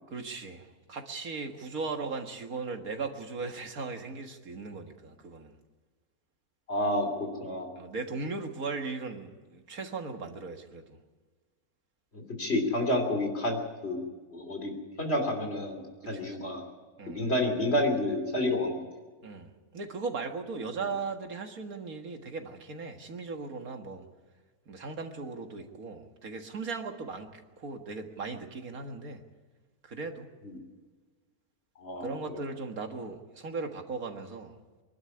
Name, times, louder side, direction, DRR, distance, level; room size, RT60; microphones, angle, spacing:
voice 1, 0.1-5.5 7.8-11.0 16.1-16.5 17.0-17.3 19.2-24.1 24.7-29.2 29.8-30.3 32.0-34.6, right 4 dB, 70° right, 5 dB, 2.1 m, -38 dB
voice 2, 6.7-7.7 12.1-14.0 14.3-14.7 15.0-15.8 16.1-16.6 17.1-18.9 30.4-30.6 31.8-32.1, left 1 dB, 45° left, 4 dB, 3.3 m, -29 dB
24.5 x 12.0 x 9.9 m, 1.4 s
omnidirectional pair, 1.6 m